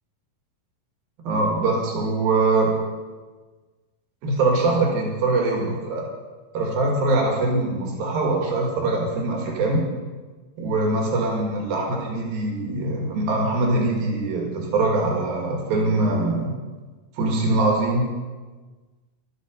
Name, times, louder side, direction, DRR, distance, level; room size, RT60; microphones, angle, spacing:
voice 1, 1.3-2.7 4.2-6.0 6.5-9.8 10.6-16.5 17.2-18.1, right 2 dB, 85° right, -1 dB, 3.9 m, -22 dB
14.0 x 12.5 x 5.2 m, 1.3 s
omnidirectional pair, 4.1 m